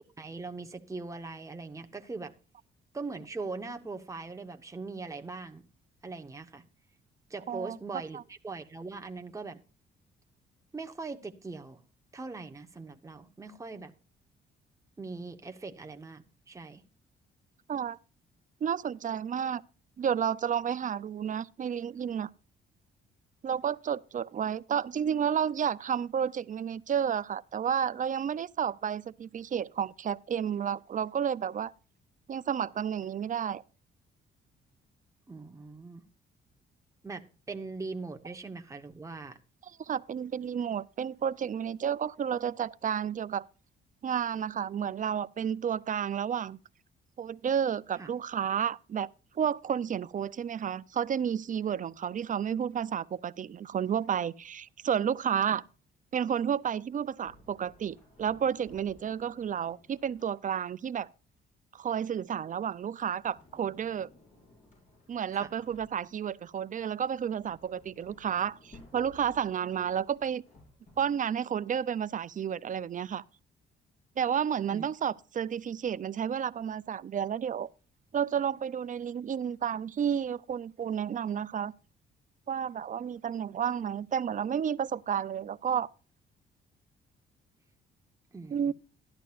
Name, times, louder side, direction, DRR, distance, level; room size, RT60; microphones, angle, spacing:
voice 1, 0.2-2.3 2.9-5.6 6.0-6.7 7.3-9.6 10.7-11.8 12.1-13.9 15.0-16.8 35.3-36.0 37.0-39.4 47.9-48.1 55.5-55.6 65.3-65.5 74.7-74.9 88.3-88.7, right 3 dB, 15° right, 1.0 m, -41 dB
voice 2, 18.6-19.6 20.0-22.3 23.4-31.7 32.3-33.6 39.8-43.4 44.0-46.6 47.2-49.1 49.4-55.6 56.1-61.1 61.7-64.1 65.1-70.4 71.0-73.2 74.2-77.7 78.1-81.7 82.5-85.9 88.5-88.7, right 8 dB, 40° right, 0.5 m, -31 dB
Sliding door, 57.2-60.8 62.8-66.4 66.9-71.3, left 2 dB, 40° left, 6.7 m, -58 dB
14.0 x 11.0 x 2.5 m
cardioid pair, 90°, 20 cm